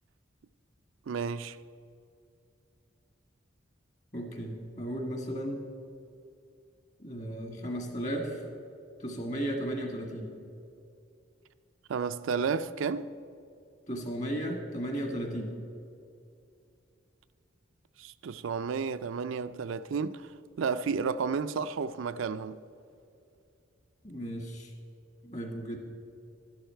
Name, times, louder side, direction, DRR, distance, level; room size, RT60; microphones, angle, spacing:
voice 1, 1.1-1.6 11.9-13.1 18.0-20.3 20.6-22.6, right 5 dB, 85° right, 0.4 m, -32 dB
voice 2, 4.1-5.7 7.0-8.4 9.0-10.4 13.9-15.6 24.0-24.7 25.2-25.8, equal, 35° left, 1.8 m, -35 dB
12.5 x 11.5 x 4.5 m
head